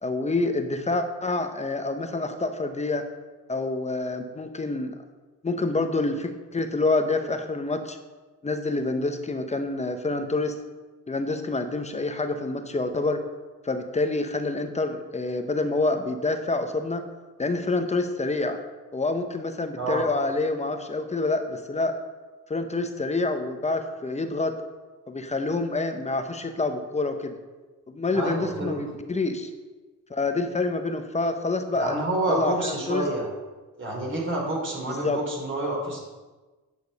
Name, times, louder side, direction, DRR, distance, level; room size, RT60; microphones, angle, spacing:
voice 1, 0.0-3.0 3.5-5.0 5.4-8.0 8.4-10.6 11.1-13.2 13.6-17.0 17.4-18.6 18.9-22.0 22.5-24.6 25.1-27.4 27.9-29.5 30.1-32.0 32.3-33.0 34.9-35.2, left 3 dB, 20° left, 7 dB, 0.9 m, -27 dB
voice 2, 19.8-20.1 28.1-28.8 31.7-33.3 33.8-36.0, right 1 dB, 40° right, -2 dB, 3.2 m, -28 dB
9.6 x 6.2 x 5.3 m, 1.3 s
cardioid pair, 90°, 30 cm